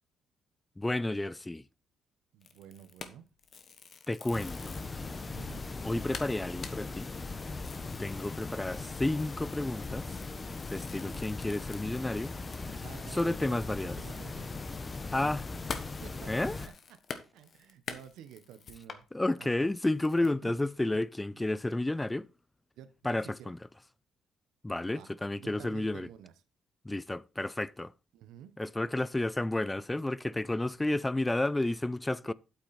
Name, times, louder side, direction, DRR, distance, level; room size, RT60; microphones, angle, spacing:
voice 1, 0.8-1.6 4.1-4.8 5.8-7.1 8.0-10.1 10.7-12.3 13.1-14.0 15.1-15.5 16.3-16.6 19.1-22.3 23.0-23.6 24.6-26.1 26.9-27.9 28.6-32.3, left 2 dB, 15° left, 0.4 m, -31 dB
voice 2, 2.3-3.3 5.3-5.7 10.9-11.2 12.8-14.5 16.0-19.1 19.4-19.7 20.2-20.6 22.8-23.5 24.8-25.1 25.4-26.4 28.1-28.6, right 9 dB, 90° right, 1.0 m, -51 dB
sound 1, 2.4-5.0 5.5-5.6 5.8-5.9 6.1-13.0 13.3-13.4 13.7-19.0 19.6-20.3, left 6 dB, 50° left, 1.3 m, -46 dB
sound 2, 4.3-16.7, left 3 dB, 30° left, 0.9 m, -39 dB
8.5 x 8.3 x 4.2 m
cardioid pair, 90°, 0 cm